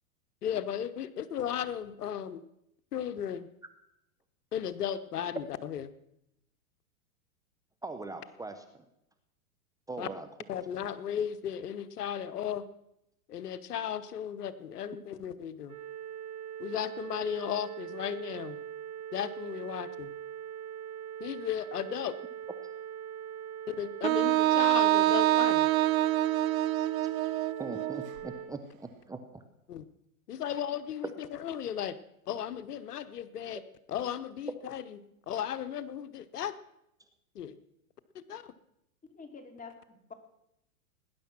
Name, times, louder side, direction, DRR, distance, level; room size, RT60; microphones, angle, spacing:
voice 1, 0.4-2.4 2.9-3.5 4.5-5.9 10.0-10.1 10.5-12.7 13.3-15.8 16.6-18.6 19.1-20.1 21.2-22.2 23.7-25.7 29.7-29.8 30.3-32.0 32.3-33.6 33.9-36.5 37.3-37.6 38.1-38.5, left 9 dB, 80° left, 14 dB, 1.1 m, -35 dB
voice 2, 7.8-8.8 9.9-10.3 27.6-29.4, right 3 dB, 10° right, 7 dB, 1.0 m, -41 dB
sound 1, 15.7-28.5, right 9 dB, 85° right, 3.6 m, -42 dB
Wind instrument woodwind instrument, 24.0-28.1, right 15 dB, 65° right, 0.7 m, -26 dB
voice 3, 39.0-40.1, left 4 dB, 15° left, 5 dB, 2.7 m, -48 dB
19.0 x 10.5 x 6.1 m, 0.81 s
hypercardioid pair, 120°, 45 cm